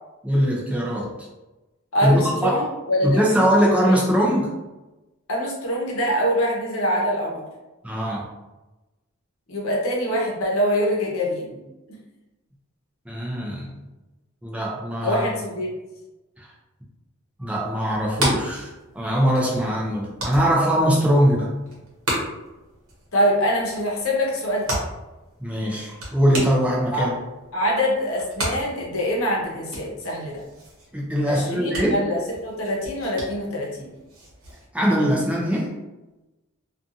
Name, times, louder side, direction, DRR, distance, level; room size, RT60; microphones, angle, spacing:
voice 1, 0.2-1.1 2.0-2.7 3.0-4.5 7.8-8.3 13.1-13.7 14.4-15.3 16.4-16.5 17.4-21.5 25.4-27.2 30.9-32.0 34.7-35.7, equal, 5° right, -4 dB, 0.4 m, -21 dB
voice 2, 1.9-3.2 3.8-4.0 5.3-7.4 9.5-11.6 15.0-15.7 20.9-21.0 23.1-24.8 26.9-27.1 27.5-30.4 31.2-33.9, equal, 75° left, -2 dB, 0.8 m, -24 dB
sound 1, 17.9-34.7, right 1 dB, 75° right, 0.9 m, -34 dB
2.5 x 2.4 x 2.6 m, 1.1 s
head